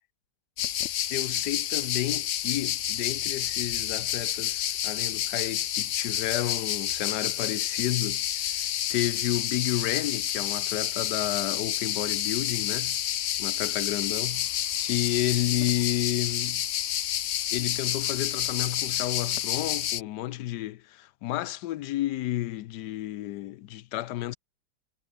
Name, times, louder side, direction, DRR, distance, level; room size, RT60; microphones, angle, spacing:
sound 1, 0.6-20.0, left 11 dB, 60° left, 0.9 m, -29 dB
voice 1, 1.1-13.0 13.4-14.4 14.8-16.6 17.5-24.4, left 15 dB, 85° left, 1.3 m, -31 dB
omnidirectional pair, 1.7 m